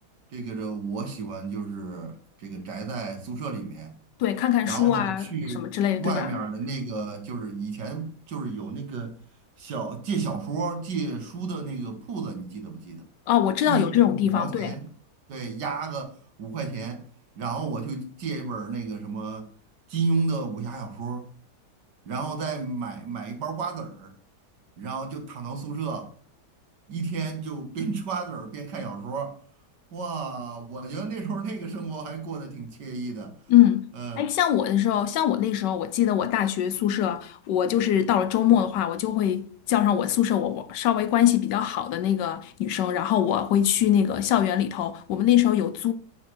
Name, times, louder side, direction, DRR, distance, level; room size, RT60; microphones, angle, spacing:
voice 1, 0.3-3.9 4.6-9.2 9.6-13.0 13.7-14.9 15.3-17.0 17.4-19.5 19.9-21.3 22.1-24.1 24.8-26.1 26.9-29.4 29.9-33.4 33.9-34.3, right 4 dB, 85° right, 2.0 m, -32 dB
voice 2, 4.2-5.3 5.6-6.3 13.3-14.7 33.5-45.9, left 11 dB, 85° left, 1.3 m, -23 dB
6.4 x 4.7 x 6.2 m
omnidirectional pair, 1.8 m